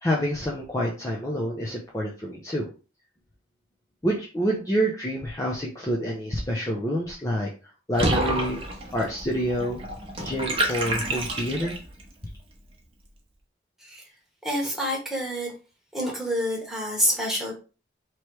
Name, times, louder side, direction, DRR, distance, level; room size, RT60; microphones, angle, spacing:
voice 1, 0.0-2.7 4.0-7.5 7.9-8.6 8.9-9.8 10.2-11.7, equal, 20° left, -3 dB, 0.6 m, -27 dB
Water / Bathtub (filling or washing), 7.9-12.0, right 1 dB, 30° right, 0.9 m, -28 dB
voice 2, 14.4-15.5 15.9-17.5, equal, ahead, -3 dB, 1.3 m, -27 dB
3.2 x 3.0 x 4.6 m, 0.34 s
head